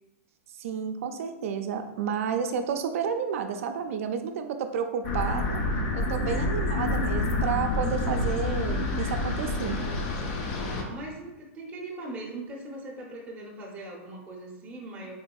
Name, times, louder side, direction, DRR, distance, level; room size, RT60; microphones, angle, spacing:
voice 1, 0.6-5.6 5.9-9.8, right 7 dB, 65° right, 6 dB, 0.4 m, -31 dB
sound 1, 5.0-10.8, left 2 dB, 40° left, 0.5 m, -28 dB
voice 2, 10.5-15.1, right 2 dB, 15° right, -3 dB, 0.6 m, -40 dB
3.7 x 2.6 x 2.3 m, 0.99 s
hypercardioid pair, 135°, 8 cm